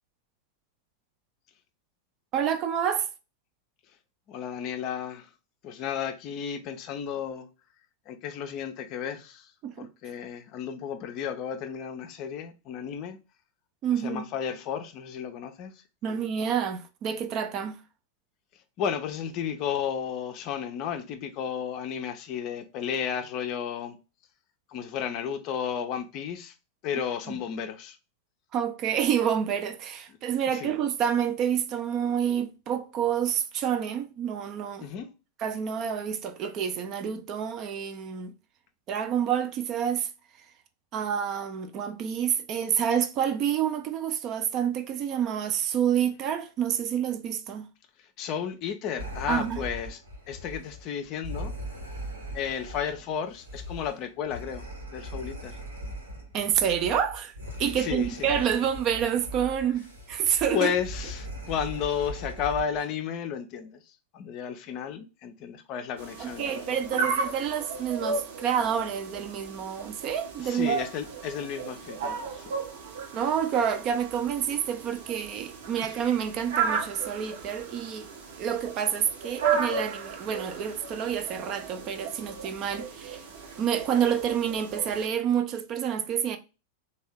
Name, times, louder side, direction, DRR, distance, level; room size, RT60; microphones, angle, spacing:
voice 1, 2.3-3.1 9.6-9.9 13.8-14.2 16.0-17.8 28.5-34.9 35.4-38.3 38.9-40.1 40.9-47.7 49.3-49.6 56.3-57.3 57.6-60.7 66.2-70.7 73.1-78.1 78.4-83.2 83.6-86.4, right 8 dB, 35° right, 0.4 m, -28 dB
voice 2, 4.3-5.3 5.6-7.5 8.1-9.5 9.8-13.2 14.0-15.7 16.1-16.2 18.8-24.0 24.7-26.5 26.8-28.0 30.5-30.7 34.8-35.1 48.2-50.0 50.3-51.5 52.3-55.5 57.8-58.3 60.5-63.8 64.1-67.1 70.4-72.5 75.8-75.9, left 8 dB, 40° left, 0.5 m, -33 dB
sound 1, 49.0-62.8, equal, 75° right, 1.2 m, -40 dB
sound 2, 66.0-85.1, right 5 dB, 60° right, 0.8 m, -34 dB
3.4 x 2.3 x 3.4 m
figure-of-eight pair, 90°, 0 cm